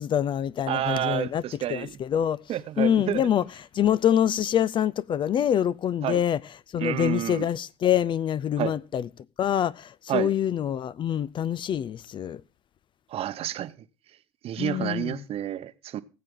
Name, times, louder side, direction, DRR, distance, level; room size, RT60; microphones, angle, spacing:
voice 1, 0.0-1.4 1.7-2.4 2.8-3.4 3.7-6.4 6.7-9.1 9.4-12.4 14.6-15.2, left 9 dB, 35° left, 0.5 m, -25 dB
voice 2, 0.7-2.0 2.5-3.3 6.0-6.2 6.8-7.5 8.6-8.8 10.1-10.3 13.1-13.7 14.4-16.0, right 12 dB, 45° right, 0.9 m, -29 dB
19.5 x 7.6 x 3.7 m
figure-of-eight pair, 65°, 14 cm